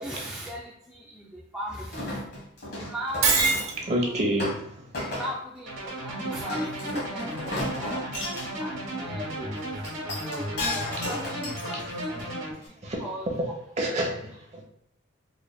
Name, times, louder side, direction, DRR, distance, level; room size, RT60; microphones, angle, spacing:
voice 1, 0.0-2.2 2.8-3.6 4.0-4.2 5.1-6.7 7.1-8.1 8.6-8.7 9.0-9.5 10.2-12.3 13.0-13.5, equal, 5° right, -5 dB, 0.3 m, -38 dB
Chink clink, 1.9-3.9 4.4-4.6 4.9-5.3 6.5-8.5 9.8-12.2 12.7-12.8, left 1 dB, 50° left, 1.4 m, -32 dB
Shatter, 3.2-3.8, right 5 dB, 80° right, 0.8 m, -23 dB
voice 2, 3.8-4.9 11.0-11.1 11.7-11.8 12.2-12.4 12.8-13.0 13.8-14.2 14.5-14.6, right 1 dB, 30° right, -1 dB, 0.9 m, -28 dB
sound 1, 5.7-12.5, right 1 dB, 65° right, 1.2 m, -34 dB
4.1 x 3.2 x 2.2 m, 0.80 s
head